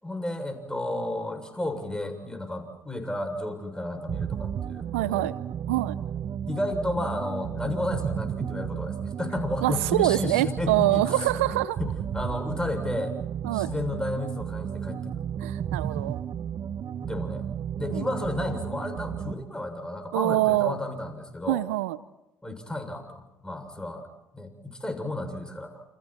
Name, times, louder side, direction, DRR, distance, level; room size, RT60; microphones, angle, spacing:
voice 1, 0.0-5.3 6.5-11.3 11.8-13.1 13.5-15.3 17.0-17.5 17.8-21.6 22.4-24.1 24.3-25.8, left 1 dB, 10° left, 5 dB, 7.1 m, -32 dB
sound 1, 4.1-19.4, right 9 dB, 50° right, 1.2 m, -33 dB
voice 2, 4.9-5.3 5.7-6.0 9.6-11.8 13.4-13.7 15.4-16.2 17.9-18.1 20.1-20.8 21.5-22.0, right 17 dB, 80° right, 16 dB, 0.7 m, -25 dB
29.5 x 29.0 x 4.4 m, 0.95 s
hypercardioid pair, 50°, 7 cm